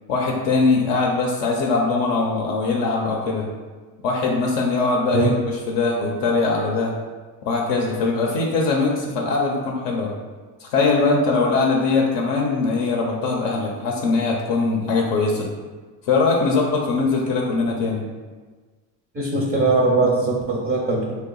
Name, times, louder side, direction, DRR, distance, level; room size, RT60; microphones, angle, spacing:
voice 1, 0.1-3.5 4.0-6.9 7.4-10.2 10.6-15.5 16.0-18.1, left 3 dB, 60° left, -1 dB, 0.6 m, -21 dB
voice 2, 19.1-21.2, right 3 dB, 20° right, -2 dB, 0.5 m, -20 dB
2.7 x 2.2 x 3.8 m, 1.4 s
supercardioid pair, 90°, 50 cm